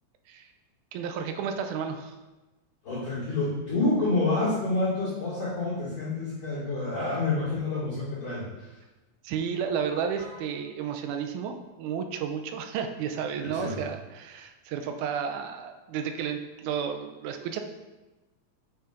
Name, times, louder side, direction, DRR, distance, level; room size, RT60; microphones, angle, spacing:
voice 1, 0.9-2.1 9.2-17.6, right 7 dB, 80° right, 6 dB, 2.0 m, -32 dB
voice 2, 2.8-8.7 10.2-10.3 13.4-13.8, left 2 dB, 50° left, -12 dB, 2.6 m, -28 dB
7.0 x 6.1 x 2.5 m, 1.1 s
omnidirectional pair, 3.7 m